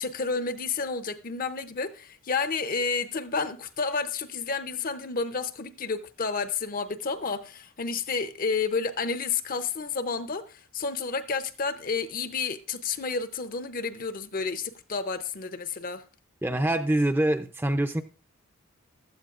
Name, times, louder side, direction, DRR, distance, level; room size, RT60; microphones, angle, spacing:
voice 1, 0.0-16.0, left 4 dB, 40° left, 0.6 m, -30 dB
voice 2, 16.4-18.0, right 1 dB, 10° right, 0.5 m, -25 dB
15.5 x 12.5 x 2.5 m
head